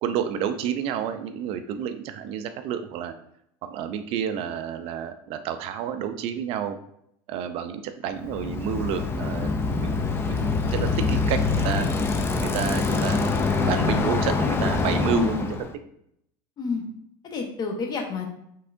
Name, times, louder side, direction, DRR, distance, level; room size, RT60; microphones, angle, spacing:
voice 1, 0.0-3.1 3.6-6.8 7.3-10.0 10.3-11.9 12.4-13.3 13.6-15.5, right 8 dB, 50° right, 9 dB, 0.4 m, -30 dB
Bicycle, 8.2-15.7, left 4 dB, 20° left, 0.4 m, -25 dB
voice 2, 15.1-15.4 16.6-16.8 17.2-18.3, left 4 dB, 35° left, 3 dB, 1.0 m, -29 dB
5.7 x 3.6 x 2.6 m, 0.73 s
supercardioid pair, 130°, 12 cm